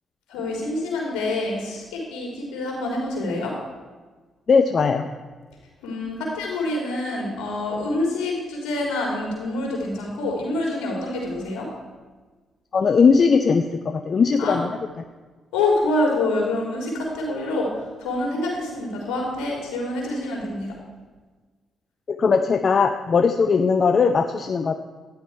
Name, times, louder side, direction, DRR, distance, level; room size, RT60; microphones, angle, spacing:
voice 1, 0.3-3.5 5.8-11.7 14.4-14.6 15.5-20.7, left 2 dB, 75° left, -1 dB, 3.6 m, -26 dB
voice 2, 4.5-5.1 12.7-14.7 22.1-24.7, left 5 dB, 50° left, 7 dB, 0.6 m, -19 dB
13.0 x 10.5 x 4.6 m, 1.4 s
hypercardioid pair, 45°, 0 cm